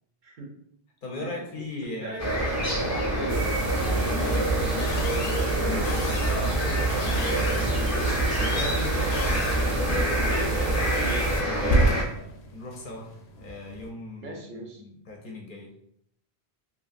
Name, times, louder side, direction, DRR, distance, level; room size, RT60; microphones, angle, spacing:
voice 1, 0.2-0.6 1.2-1.6 2.0-6.3 6.9-7.6 11.0-11.2 14.2-14.8, right 2 dB, 60° right, 0 dB, 0.6 m, -41 dB
voice 2, 1.0-2.5 6.3-10.1 10.5-13.1 13.4-15.7, left 2 dB, 60° left, 0 dB, 0.7 m, -39 dB
sound 1, 2.2-12.0, equal, 20° left, 0.4 m, -27 dB
sound 2, 3.3-11.4, right 3 dB, 85° right, 1.0 m, -29 dB
sound 3, 4.8-13.9, right 1 dB, 90° left, 0.8 m, -33 dB
3.0 x 2.5 x 2.4 m, 0.72 s
omnidirectional pair, 1.0 m